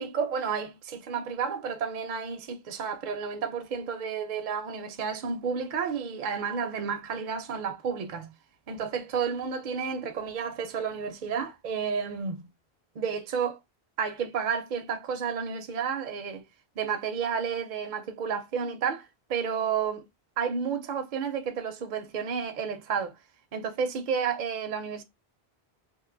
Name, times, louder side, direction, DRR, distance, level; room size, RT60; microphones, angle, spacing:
voice 1, 0.0-8.3 8.7-12.4 13.0-13.6 14.0-16.4 16.8-20.1 20.4-23.2 23.5-25.0, right 6 dB, 60° right, 0.6 m, -31 dB
2.6 x 2.2 x 3.7 m
omnidirectional pair, 1.0 m